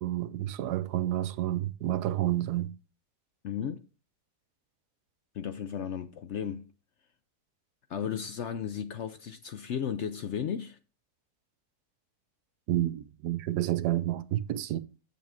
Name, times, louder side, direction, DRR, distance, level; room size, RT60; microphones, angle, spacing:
voice 1, 0.0-2.7 12.7-14.8, right 13 dB, 85° right, 1.2 m, -29 dB
voice 2, 3.4-3.8 5.3-6.7 7.9-10.8, left 8 dB, 65° left, 0.7 m, -34 dB
7.5 x 7.2 x 3.5 m
omnidirectional pair, 1.7 m